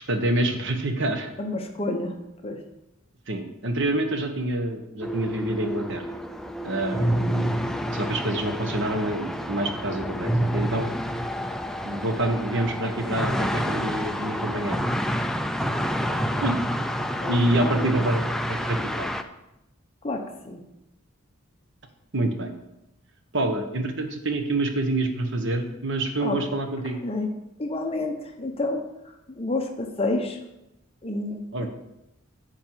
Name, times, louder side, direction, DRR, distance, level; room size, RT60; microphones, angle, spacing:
voice 1, 0.1-1.3 3.3-6.1 6.6-7.5 7.9-10.9 11.8-14.8 16.4-16.6 17.3-18.2 18.5-19.1 22.1-22.5 23.3-27.0 31.5-31.7, right 1 dB, 60° right, 6 dB, 1.2 m, -27 dB
voice 2, 1.4-2.1 2.4-2.6 7.0-7.4 16.0-16.4 17.2-18.1 20.0-20.6 26.2-26.4 27.0-27.3 27.6-28.9 29.3-30.4 31.0-31.7, left 2 dB, 30° left, 3 dB, 1.0 m, -30 dB
sound 1, 5.0-19.2, equal, ahead, 0.4 m, -28 dB
9.3 x 4.6 x 7.5 m, 0.90 s
head